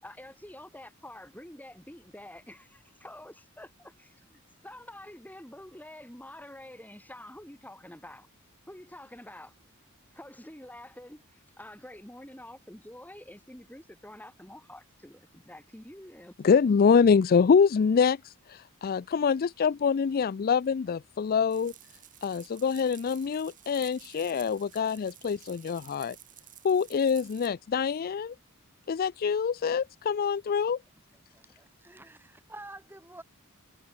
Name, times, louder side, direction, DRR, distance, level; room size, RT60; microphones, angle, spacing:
voice 1, 0.0-8.3 8.7-9.5 10.1-16.6, left 1 dB, 10° left, 3.1 m, -47 dB
voice 2, 16.4-21.7 22.2-26.2 26.6-28.3 28.9-30.8, left 6 dB, 45° left, 0.4 m, -25 dB
sound 1, 21.5-27.5, right 11 dB, 40° right, 6.4 m, -52 dB
voice 3, 31.1-33.2, right 2 dB, 10° right, 2.7 m, -48 dB
head